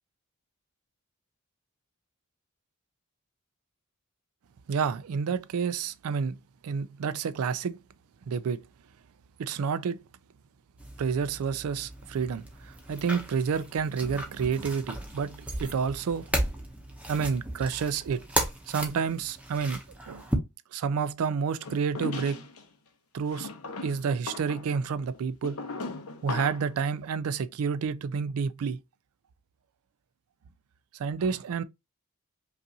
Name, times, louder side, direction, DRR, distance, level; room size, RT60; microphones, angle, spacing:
voice 1, 4.7-6.4 6.6-7.8 8.3-8.6 9.4-10.0 11.0-16.3 17.1-18.3 18.7-19.8 20.1-20.3 20.7-22.5 23.1-23.5 23.8-25.6 26.2-28.8 31.0-31.6, right 6 dB, 75° right, 0.4 m, -29 dB
sound 1, 10.8-20.4, right 1 dB, 5° right, 0.7 m, -35 dB
sound 2, 21.6-22.6 23.3-26.7, left 3 dB, 75° left, 0.8 m, -38 dB
5.3 x 2.5 x 2.7 m
head